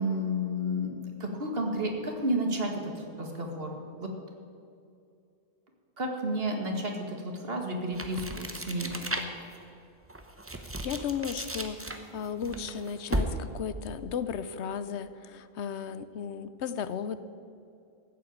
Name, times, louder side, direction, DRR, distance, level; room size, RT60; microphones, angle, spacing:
voice 1, 0.0-3.8 4.0-4.1 6.0-9.0, equal, 60° right, 2 dB, 2.0 m, -31 dB
sound 1, 7.9-9.5 10.0-13.6, right 1 dB, 15° right, 0.9 m, -35 dB
voice 2, 10.8-17.2, left 7 dB, 85° left, 13 dB, 1.0 m, -35 dB
14.0 x 7.7 x 8.6 m, 2.5 s
omnidirectional pair, 1.1 m